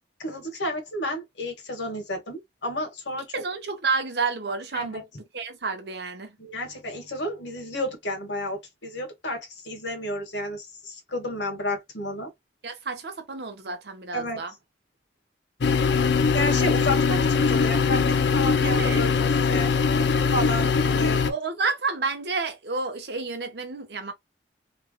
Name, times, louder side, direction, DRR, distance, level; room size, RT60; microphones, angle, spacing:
voice 1, 0.2-3.3 4.7-5.0 6.4-12.3 14.1-14.4 16.2-19.7 20.3-21.2, left 1 dB, 90° left, 1.7 m, -31 dB
voice 2, 3.3-5.1 5.3-6.4 12.6-14.5 18.6-19.0 21.3-24.1, right 4 dB, 70° right, 0.9 m, -30 dB
sound 1, 15.6-21.3, left 5 dB, 75° left, 0.5 m, -21 dB
3.3 x 3.1 x 2.2 m
head